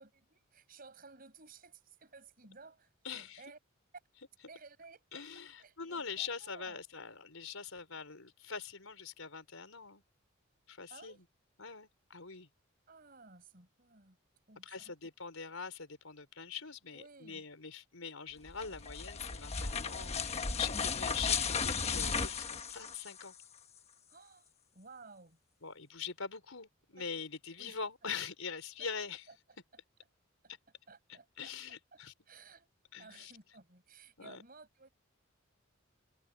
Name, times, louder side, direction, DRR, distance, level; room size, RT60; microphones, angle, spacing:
voice 1, 0.0-3.6 4.5-5.0 5.6-6.8 10.9-11.2 12.9-14.2 14.5-14.9 16.9-17.4 24.1-25.4 26.9-27.1 27.6-27.8 28.8-28.9 29.3-29.4 30.9-31.5 31.9-32.0 32.3-32.7 33.0-34.9, right 4 dB, 45° right, 5.8 m, -56 dB
voice 2, 3.0-3.4 5.1-10.0 10.7-11.2 11.6-12.5 14.6-23.3 25.6-29.2 31.1-32.1 32.9-33.3 34.2-34.4, left 6 dB, 85° left, 4.4 m, -43 dB
sound 1, 18.5-23.4, left 5 dB, 30° left, 1.2 m, -35 dB
head